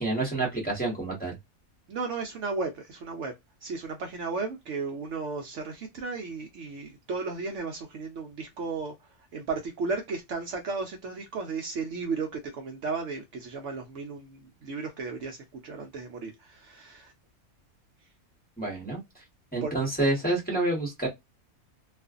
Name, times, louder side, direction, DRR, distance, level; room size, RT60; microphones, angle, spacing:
voice 1, 0.0-1.3 18.6-19.0 19.5-21.1, right 2 dB, 5° left, 0.9 m, -28 dB
voice 2, 1.9-3.3 3.6-17.1 19.6-19.7, right 4 dB, 65° right, 0.8 m, -34 dB
2.4 x 2.4 x 2.3 m
omnidirectional pair, 1.5 m